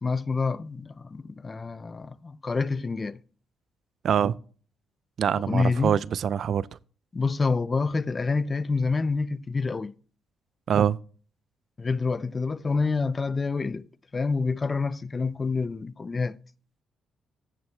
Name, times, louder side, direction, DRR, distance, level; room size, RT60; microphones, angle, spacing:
voice 1, 0.0-3.2 5.4-5.9 7.1-9.9 11.8-13.9 14.1-16.4, left 4 dB, 30° left, 0.4 m, -27 dB
voice 2, 4.0-4.4 5.2-6.6 10.7-11.0, right 8 dB, 60° right, 0.3 m, -24 dB
15.5 x 6.3 x 3.1 m
cardioid pair, 90°, 0 cm